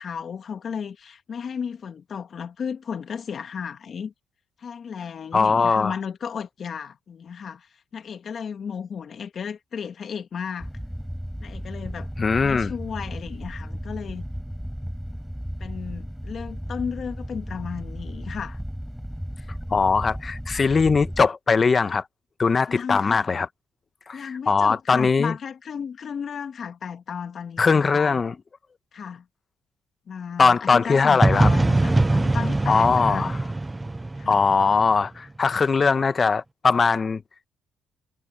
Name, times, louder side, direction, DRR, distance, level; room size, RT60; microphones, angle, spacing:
voice 1, 0.0-4.1 4.6-10.7 11.4-12.1 12.4-14.3 15.6-18.6 22.7-23.3 24.1-28.2 28.9-29.3 30.1-33.3 34.2-34.4, left 7 dB, 55° left, 2.0 m, -34 dB
voice 2, 5.3-6.0 12.2-12.7 19.7-22.0 22.4-23.5 24.1-25.3 27.6-28.3 30.4-31.5 32.7-33.4 34.3-37.2, left 5 dB, 35° left, 1.1 m, -20 dB
sound 1, 10.6-21.3, equal, ahead, 5.7 m, -34 dB
sound 2, 31.2-35.1, right 2 dB, 15° right, 0.6 m, -22 dB
cardioid pair, 90°, 0 cm